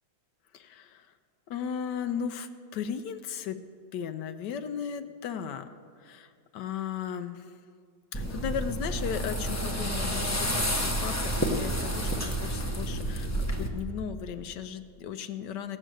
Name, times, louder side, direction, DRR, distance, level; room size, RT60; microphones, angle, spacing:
voice 1, 0.5-1.1 1.5-3.6 3.9-5.7 6.0-7.5 8.1-15.8, left 8 dB, 75° left, 10 dB, 1.2 m, -36 dB
sound 1, 8.1-13.7, equal, 25° left, 0.3 m, -30 dB
16.5 x 6.4 x 7.7 m, 2.1 s
omnidirectional pair, 2.0 m